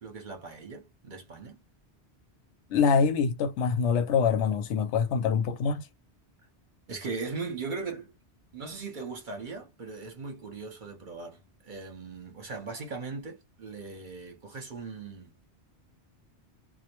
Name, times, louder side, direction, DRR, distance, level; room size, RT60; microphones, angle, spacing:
voice 1, 0.0-1.6 6.9-8.1 8.5-15.3, right 4 dB, 50° right, 0.9 m, -39 dB
voice 2, 2.7-5.9, left 6 dB, 80° left, 0.9 m, -25 dB
2.2 x 2.1 x 2.9 m
omnidirectional pair, 1.2 m